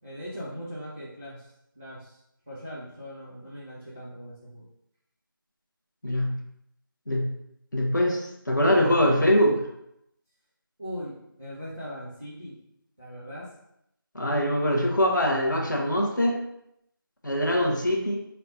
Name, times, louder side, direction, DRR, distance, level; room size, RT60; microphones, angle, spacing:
voice 1, 0.0-2.2 2.5-4.6 10.8-12.6 13.0-13.5, equal, 5° left, -12 dB, 0.5 m, -40 dB
voice 2, 7.7-9.6 14.1-16.4 17.2-18.2, equal, 55° left, -1 dB, 1.1 m, -23 dB
4.3 x 2.3 x 4.0 m, 0.78 s
figure-of-eight pair, 170°, 12 cm